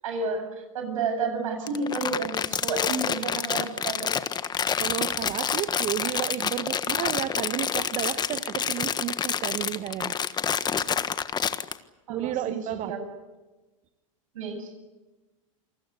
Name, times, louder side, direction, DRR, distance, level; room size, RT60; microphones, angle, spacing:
voice 1, 0.0-4.2 12.1-13.1 14.3-14.7, right 4 dB, 80° right, 6 dB, 7.7 m, -31 dB
Crumpling crinkling, 1.6-11.7, left 7 dB, 25° left, 1.4 m, -28 dB
voice 2, 4.8-10.2 12.1-12.9, right 12 dB, 45° right, 10 dB, 1.3 m, -32 dB
28.0 x 20.0 x 8.4 m, 1.2 s
hypercardioid pair, 100°, 17 cm